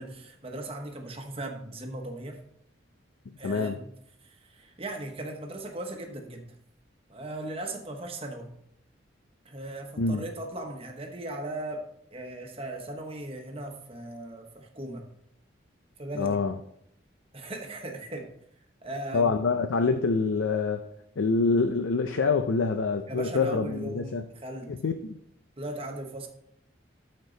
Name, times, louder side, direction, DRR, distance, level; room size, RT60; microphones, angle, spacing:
voice 1, 0.0-2.4 3.4-3.9 4.2-6.5 7.1-8.5 9.4-11.9 12.1-15.0 16.0-16.4 17.3-18.3 18.8-19.4 23.1-24.7 25.6-26.3, right 1 dB, 30° right, 3 dB, 1.0 m, -38 dB
voice 2, 3.4-3.8 10.0-10.2 16.2-16.5 19.1-20.9 21.2-24.2 24.7-25.2, left 4 dB, 90° left, 7 dB, 0.5 m, -26 dB
13.0 x 4.4 x 3.9 m, 0.73 s
head